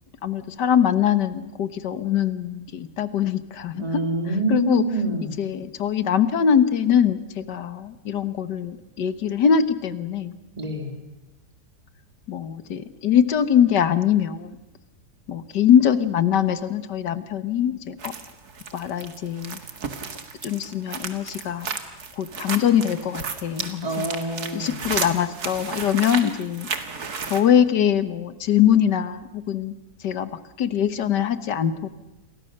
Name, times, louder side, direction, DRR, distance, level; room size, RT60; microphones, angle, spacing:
voice 1, 0.2-4.0 4.5-4.8 5.4-10.3 12.3-14.6 15.3-18.1 18.7-19.6 20.4-21.7 22.2-24.1 24.5-26.7 27.3-29.7 30.0-30.3 30.6-31.9, left 9 dB, 85° left, 13 dB, 1.9 m, -22 dB
voice 2, 3.8-5.3 10.6-10.9 23.8-24.8, right 2 dB, 25° right, 3 dB, 3.0 m, -26 dB
sound 1, 18.0-27.4, right 5 dB, 65° right, 2.4 m, -33 dB
29.5 x 23.0 x 6.6 m, 0.99 s
omnidirectional pair, 1.8 m